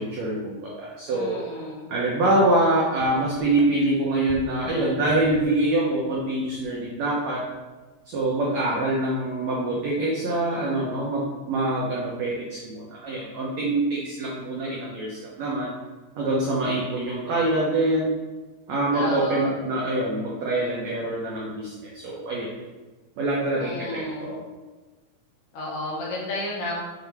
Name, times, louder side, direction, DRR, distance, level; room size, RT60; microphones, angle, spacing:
voice 1, 0.0-1.4 1.9-7.4 8.1-15.7 16.1-18.1 18.7-22.5 23.2-24.4, right 1 dB, 80° right, -4 dB, 1.5 m, -25 dB
voice 2, 1.1-1.8 18.9-19.5 23.6-24.3 25.5-26.7, left 1 dB, 65° left, -4 dB, 2.7 m, -32 dB
sound 1, 3.0-5.7 6.0-7.1 7.4-7.7, left 2 dB, 80° left, 2.8 m, -44 dB
6.9 x 6.0 x 3.5 m, 1.2 s
omnidirectional pair, 4.5 m